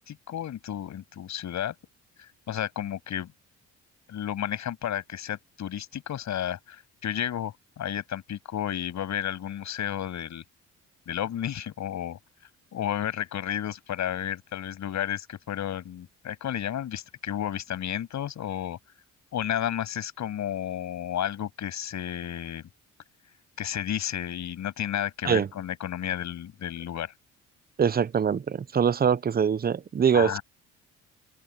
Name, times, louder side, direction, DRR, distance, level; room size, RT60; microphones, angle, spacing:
voice 1, 0.0-1.7 2.2-3.3 4.1-10.4 11.1-12.2 12.7-18.8 19.3-22.6 23.6-27.1 30.1-30.4, left 10 dB, 70° left, 7.5 m, -32 dB
voice 2, 27.8-30.4, right 7 dB, 30° right, 0.7 m, -23 dB
cardioid pair, 90°, 30 cm